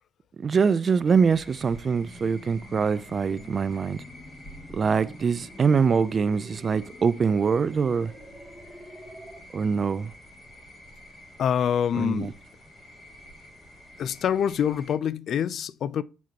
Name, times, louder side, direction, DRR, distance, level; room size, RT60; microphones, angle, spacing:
voice 1, 0.4-4.0 4.7-8.1 9.5-10.1 11.9-12.3, right 5 dB, 45° right, 0.4 m, -24 dB
sound 1, 1.0-15.0, equal, 35° left, 2.9 m, -49 dB
sound 2, 2.0-9.4, equal, 10° left, 2.4 m, -47 dB
voice 2, 11.4-12.4 14.0-16.0, left 8 dB, 65° left, 0.3 m, -26 dB
7.1 x 4.6 x 2.8 m
cardioid pair, 90°, 0 cm